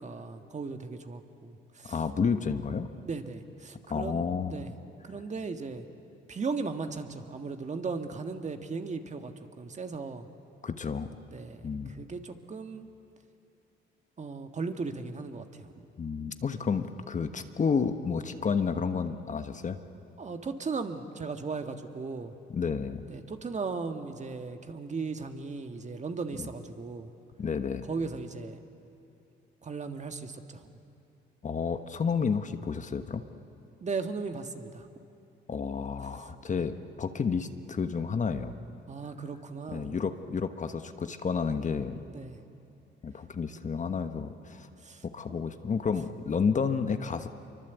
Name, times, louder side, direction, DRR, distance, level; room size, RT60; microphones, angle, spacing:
voice 1, 0.0-2.0 3.1-4.7 5.0-5.8 6.3-10.3 11.3-12.9 14.2-15.7 20.2-22.3 23.1-27.1 27.9-28.6 29.6-30.6 33.8-34.9 36.2-36.3 38.9-39.9 42.1-42.4 43.9-44.0 44.8-45.3, right 4 dB, 35° right, 7 dB, 1.7 m, -37 dB
voice 2, 1.9-2.9 3.9-4.6 10.6-11.1 11.6-12.1 16.0-19.8 22.5-23.1 26.4-26.5 27.4-27.9 31.4-33.2 35.5-38.5 39.7-42.0 43.0-44.7 45.0-47.3, left 5 dB, 40° left, 9 dB, 1.2 m, -31 dB
26.5 x 24.0 x 8.2 m, 2.7 s
cardioid pair, 90°, 20 cm